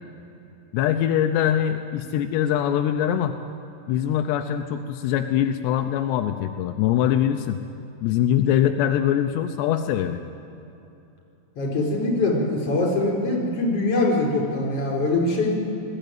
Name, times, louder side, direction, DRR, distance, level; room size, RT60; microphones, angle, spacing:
voice 1, 0.7-3.4 3.9-7.6 8.0-10.2, left 10 dB, 85° left, 6 dB, 2.5 m, -23 dB
voice 2, 11.6-15.5, left 2 dB, 30° left, -2 dB, 5.2 m, -23 dB
20.5 x 14.5 x 9.1 m, 2.8 s
omnidirectional pair, 5.7 m